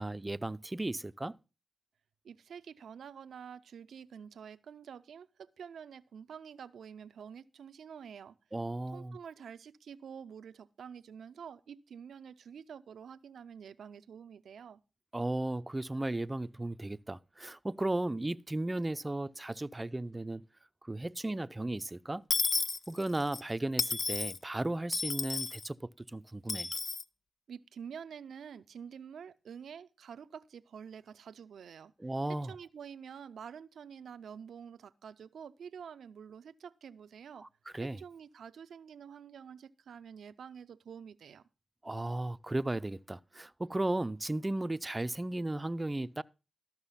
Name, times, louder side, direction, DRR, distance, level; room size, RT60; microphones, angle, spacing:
voice 1, 0.0-1.4 8.5-9.2 15.1-20.4 20.9-22.2 22.9-26.7 32.0-32.5 37.4-37.5 37.7-38.0 41.8-46.2, right 2 dB, 25° right, 0.5 m, -35 dB
voice 2, 2.2-8.3 8.9-14.8 27.5-31.9 32.3-37.5 37.8-41.4, right 7 dB, 90° right, 0.5 m, -48 dB
Dishes pots and pans / Coin (dropping), 22.3-23.4 23.8-24.4 24.9-25.6 26.5-27.0, left 4 dB, 60° left, 0.5 m, -32 dB
13.5 x 6.1 x 5.6 m
cardioid pair, 40°, 0 cm